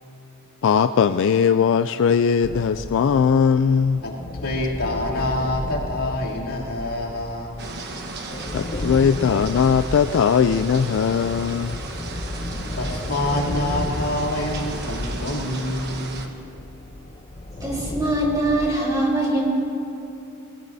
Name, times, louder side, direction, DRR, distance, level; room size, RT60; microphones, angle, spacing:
voice 1, 0.6-4.0 8.5-11.8, left 6 dB, 60° left, 10 dB, 0.3 m, -19 dB
sound 1, 2.4-18.7, left 1 dB, 30° left, 0.7 m, -33 dB
voice 2, 4.4-7.7 12.7-16.4, left 1 dB, 80° left, -5 dB, 2.9 m, -26 dB
sound 2, 7.6-16.3, right 3 dB, 50° right, 1.2 m, -35 dB
voice 3, 17.6-19.5, right 1 dB, 15° right, -4 dB, 3.9 m, -22 dB
20.5 x 20.0 x 2.7 m, 2.8 s
head